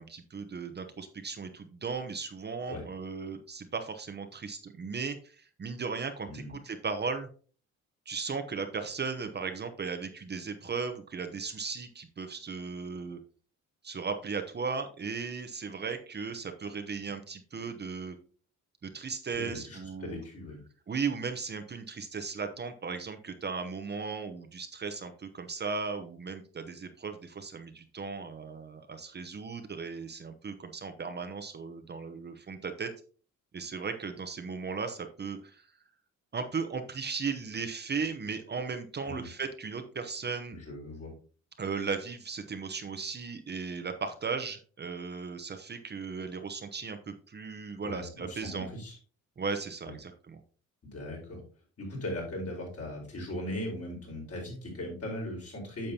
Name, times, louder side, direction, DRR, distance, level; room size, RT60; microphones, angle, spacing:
voice 1, 0.0-7.3 8.1-13.2 13.8-18.2 18.8-20.2 20.9-32.9 33.5-35.7 36.3-40.6 41.6-48.7 49.4-50.4, right 5 dB, 35° right, 7 dB, 0.9 m, -36 dB
voice 2, 6.3-6.6 19.3-20.6 39.1-39.3 40.5-41.1 47.8-49.0 50.8-51.4 51.8-55.9, left 1 dB, 50° left, -1 dB, 4.5 m, -38 dB
8.8 x 6.5 x 2.8 m, 0.40 s
cardioid pair, 90°, 30 cm